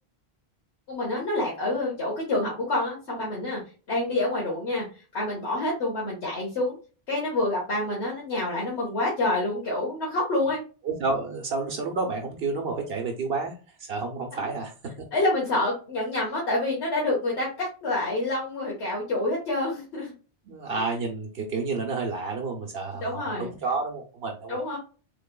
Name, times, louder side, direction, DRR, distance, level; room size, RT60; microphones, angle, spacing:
voice 1, 0.9-3.6 3.9-4.9 5.1-6.7 7.1-10.6 14.3-14.4 15.1-20.1 20.7-20.9 22.9-23.5 24.5-24.8, left 2 dB, 90° left, -5 dB, 1.5 m, -27 dB
voice 2, 10.9-13.5 13.9-14.7 20.5-24.8, right 4 dB, 70° right, 1 dB, 0.9 m, -30 dB
3.8 x 3.4 x 2.2 m, 0.35 s
omnidirectional pair, 1.1 m